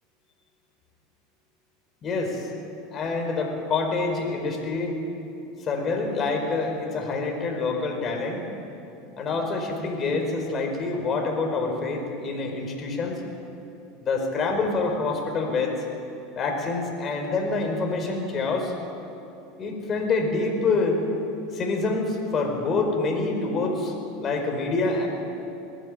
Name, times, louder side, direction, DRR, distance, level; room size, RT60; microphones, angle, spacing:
voice 1, 2.0-2.5 2.9-4.9 5.6-8.4 9.2-13.2 14.0-15.8 16.4-18.7 19.6-21.0 21.5-23.9 24.2-25.1, left 3 dB, 35° left, 2 dB, 4.8 m, -26 dB
20.0 x 14.5 x 9.0 m, 2.8 s
hypercardioid pair, 85°, 0 cm